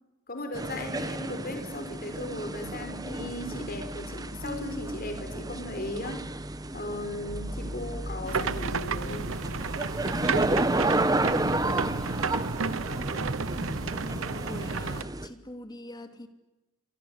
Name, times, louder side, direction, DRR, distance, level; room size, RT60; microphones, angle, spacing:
voice 1, 0.3-6.2 6.7-9.3, left 1 dB, 45° left, 6 dB, 5.2 m, -37 dB
sound 1, 0.5-15.3, right 2 dB, 20° right, 1.3 m, -32 dB
sound 2, 7.3-14.3, equal, 5° left, 1.9 m, -41 dB
sound 3, 8.3-15.0, right 4 dB, 80° right, 1.0 m, -32 dB
voice 2, 14.4-16.3, left 1 dB, 20° left, 7 dB, 2.7 m, -43 dB
28.0 x 25.0 x 8.2 m, 1.0 s
head